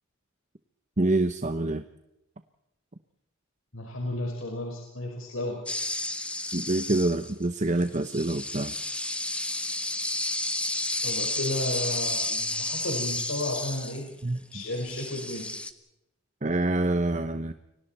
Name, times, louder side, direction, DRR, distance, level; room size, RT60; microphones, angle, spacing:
voice 1, 1.0-1.8 6.5-8.8 14.2-14.4 16.4-17.5, right 2 dB, 35° right, 9 dB, 1.0 m, -26 dB
voice 2, 3.7-5.6 11.0-14.1 14.5-15.4, left 1 dB, 80° left, 0 dB, 5.3 m, -33 dB
sound 1, 5.7-7.4 7.8-14.2 14.5-15.7, left 2 dB, 5° left, 1.5 m, -32 dB
30.0 x 24.0 x 4.4 m, 0.86 s
head